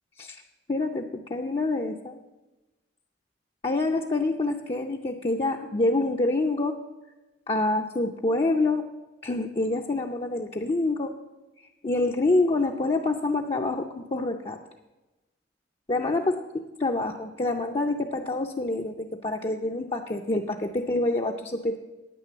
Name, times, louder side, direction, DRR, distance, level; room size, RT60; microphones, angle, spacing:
voice 1, 0.7-2.2 3.6-6.8 7.5-8.9 9.2-11.1 11.8-14.6 15.9-21.8, left 2 dB, 30° left, 1 dB, 0.5 m, -26 dB
9.9 x 8.9 x 7.0 m, 1.1 s
head